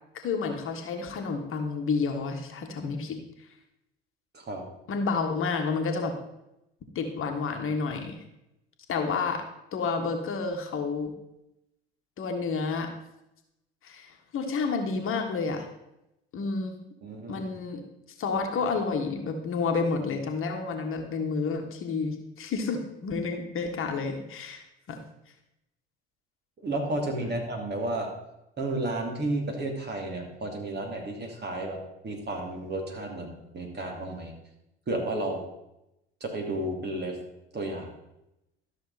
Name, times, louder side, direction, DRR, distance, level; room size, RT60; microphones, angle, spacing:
voice 1, 0.1-3.2 4.9-6.1 6.9-8.2 8.9-9.4 9.7-11.1 12.2-12.9 13.8-15.7 16.3-16.7 17.3-17.8 18.2-25.0 27.2-27.3, left 4 dB, 45° left, 4 dB, 1.5 m, -30 dB
voice 2, 17.0-17.5 26.6-28.1 28.6-34.3 34.9-35.4 36.2-37.2 37.5-37.9, right 2 dB, 35° right, 2 dB, 2.6 m, -32 dB
12.5 x 6.6 x 4.1 m, 0.87 s
figure-of-eight pair, 60°, 30 cm